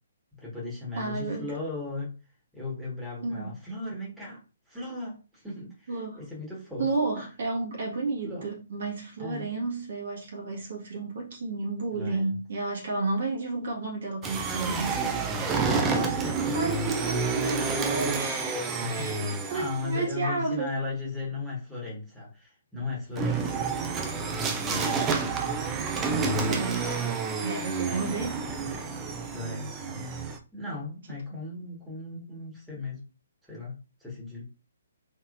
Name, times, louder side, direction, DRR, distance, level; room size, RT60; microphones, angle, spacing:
voice 1, 0.3-2.1 2.5-7.2 8.2-8.5 9.2-9.5 11.9-12.4 16.3-16.4 18.8-23.7 24.0-24.2 24.6-25.6 27.9-28.1 28.6-28.7 29.3-30.1 30.5-33.0 33.5-33.7 34.0-34.4, left 3 dB, ahead, 1.8 m, -37 dB
voice 2, 1.0-1.5 3.2-3.5 5.9-6.2 6.8-19.2 19.5-20.7 26.4-27.1 27.4-28.4, right 3 dB, 60° right, 1.9 m, -32 dB
sound 1, 14.2-20.0 23.2-30.4, right 4 dB, 20° right, 0.6 m, -29 dB
4.1 x 3.5 x 2.6 m
figure-of-eight pair, 135°, 0 cm